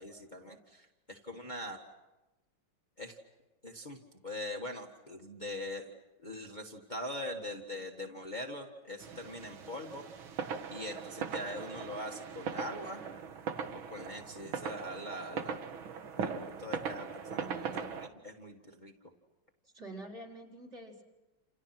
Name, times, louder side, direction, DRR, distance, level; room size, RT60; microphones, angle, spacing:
voice 1, 0.0-1.8 3.0-3.2 3.6-4.0 4.2-5.9 6.2-10.0 10.7-13.0 13.9-15.6 16.2-17.5 17.7-18.9, left 1 dB, 25° left, 0 dB, 1.9 m, -42 dB
sound 1, 9.0-18.1, right 6 dB, 85° right, 2.2 m, -40 dB
voice 2, 17.3-17.9 19.7-21.0, right 2 dB, 35° right, 0 dB, 4.4 m, -47 dB
29.5 x 29.0 x 6.1 m, 1.0 s
omnidirectional pair, 2.2 m